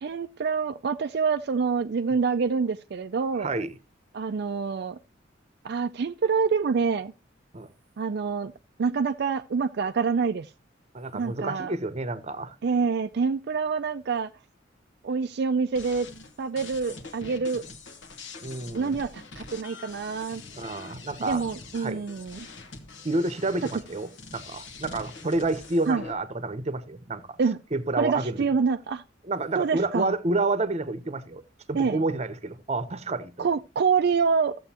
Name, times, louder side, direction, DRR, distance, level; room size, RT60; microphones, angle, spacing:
voice 1, 0.0-3.5 4.1-5.0 5.6-7.1 8.0-8.5 8.8-10.5 11.1-11.7 12.6-14.3 15.0-16.1 16.4-17.6 18.7-20.4 21.2-22.5 23.7-23.8 25.9-26.0 27.4-27.6 28.0-29.0 29.6-30.1 31.7-32.0 33.4-34.6, right 5 dB, 60° right, 0.4 m, -26 dB
voice 2, 3.4-3.7 7.5-7.7 10.9-12.5 18.4-18.9 20.6-21.4 21.8-22.0 23.0-27.4 27.7-28.4 29.3-31.4 31.7-33.5, right 2 dB, 35° right, 0.8 m, -29 dB
sound 1, 15.8-26.1, left 3 dB, 75° left, 1.3 m, -44 dB
14.0 x 7.7 x 2.9 m
head